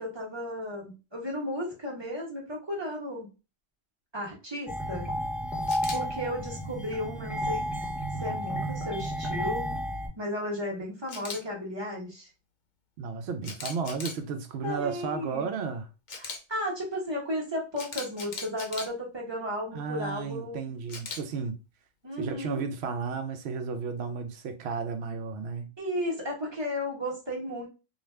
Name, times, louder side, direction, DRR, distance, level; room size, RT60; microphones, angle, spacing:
voice 1, 0.0-3.3 4.1-5.1 5.9-7.6 8.2-9.8 10.2-12.3 14.6-15.5 16.2-20.7 22.0-22.6 25.8-27.7, left 1 dB, 25° right, 1.0 m, -34 dB
sound 1, 4.7-10.1, equal, ahead, 0.5 m, -32 dB
Camera, 5.7-6.0 11.1-11.4 13.4-14.2 16.1-16.4 17.8-18.9 20.9-21.2, left 4 dB, 50° left, 0.6 m, -38 dB
voice 2, 13.0-15.9 19.7-21.6 22.2-25.7, right 5 dB, 65° right, 0.8 m, -33 dB
2.5 x 2.3 x 3.2 m
omnidirectional pair, 1.3 m